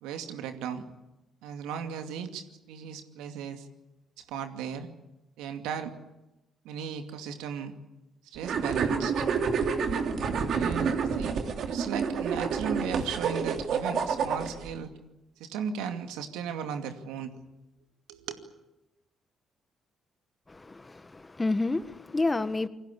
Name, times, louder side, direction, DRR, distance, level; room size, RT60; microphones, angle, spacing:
voice 1, 0.0-0.8 1.4-3.7 4.2-4.9 5.4-5.9 6.6-7.7 8.2-9.3 10.5-11.3 11.7-14.9 15.4-17.3 18.1-18.3, right 7 dB, 80° right, 6 dB, 2.4 m, -36 dB
sound 1, 8.4-14.7, right 5 dB, 60° right, 3.2 m, -29 dB
voice 2, 20.5-22.7, left 2 dB, 25° left, 13 dB, 1.6 m, -29 dB
28.5 x 20.5 x 8.6 m, 0.99 s
hypercardioid pair, 50°, 0 cm